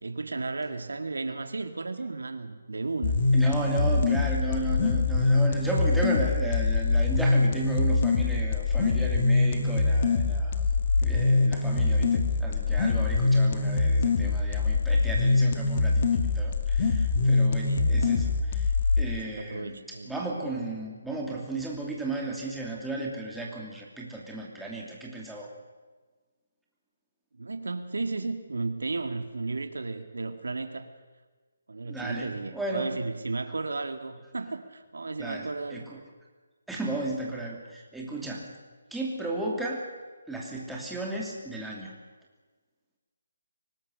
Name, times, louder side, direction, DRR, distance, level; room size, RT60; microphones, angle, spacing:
voice 1, 0.0-3.2 3.6-4.1 17.6-18.1 19.2-20.1 27.4-30.9 31.7-35.9, right 3 dB, 85° right, 8 dB, 2.1 m, -34 dB
sound 1, 3.0-19.0, left 3 dB, 40° left, 2.0 m, -24 dB
voice 2, 3.3-10.6 11.0-18.7 19.0-25.5 31.8-33.0 35.2-36.0 36.7-38.5 38.9-39.9 40.3-41.9, right 2 dB, ahead, -3 dB, 2.8 m, -34 dB
24.0 x 19.5 x 6.5 m, 1.3 s
hypercardioid pair, 160°, 0 cm